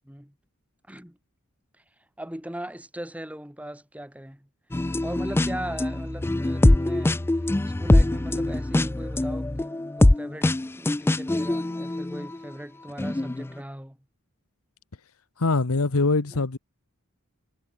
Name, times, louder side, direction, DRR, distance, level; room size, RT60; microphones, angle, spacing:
voice 1, 0.9-1.2 2.2-4.5 5.0-14.0 16.3-16.4, right 1 dB, 5° right, 1.8 m, -39 dB
sound 1, 4.7-12.5 13.0-13.5, left 1 dB, 10° left, 0.3 m, -23 dB
voice 2, 15.4-16.6, left 3 dB, 90° left, 1.1 m, -23 dB
head